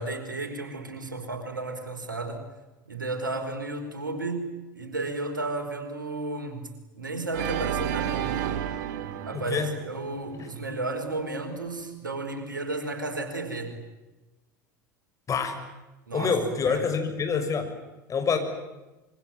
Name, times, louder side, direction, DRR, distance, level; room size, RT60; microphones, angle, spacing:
voice 1, 0.0-2.4 2.9-6.7 6.9-8.3 9.2-13.8 16.1-16.4 16.6-16.9, right 2 dB, 90° right, 5 dB, 5.0 m, -33 dB
Organ, 7.3-10.4, right 10 dB, 65° right, 2.0 m, -31 dB
voice 2, 9.3-9.7 10.3-10.5 15.3-15.6 16.1-17.7 18.1-18.4, left 5 dB, 30° left, 7 dB, 6.4 m, -26 dB
26.5 x 24.0 x 9.3 m, 1.1 s
figure-of-eight pair, 75°, 10 cm